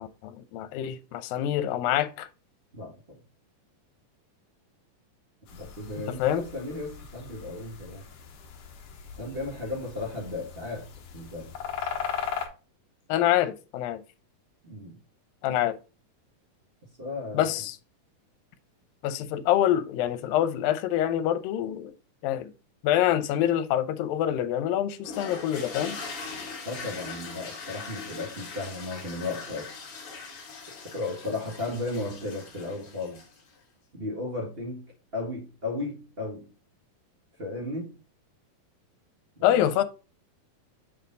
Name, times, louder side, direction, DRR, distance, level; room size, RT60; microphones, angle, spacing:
voice 1, 0.0-2.3 6.2-6.4 13.1-14.0 15.4-15.8 17.3-17.8 19.0-21.9 22.2-22.5 22.8-26.0 39.4-39.8, left 11 dB, 80° left, 2.4 m, -26 dB
voice 2, 2.7-3.2 5.5-8.1 9.2-11.5 14.6-15.0 17.0-17.6 26.6-29.7 30.8-33.3 33.9-36.5 37.4-38.0 39.4-39.8, left 2 dB, 90° right, 0.5 m, -35 dB
sound 1, 5.5-12.5, left 7 dB, 65° left, 1.6 m, -38 dB
sound 2, 25.0-33.5, left 4 dB, 45° left, 2.3 m, -41 dB
8.0 x 4.3 x 3.9 m
omnidirectional pair, 4.1 m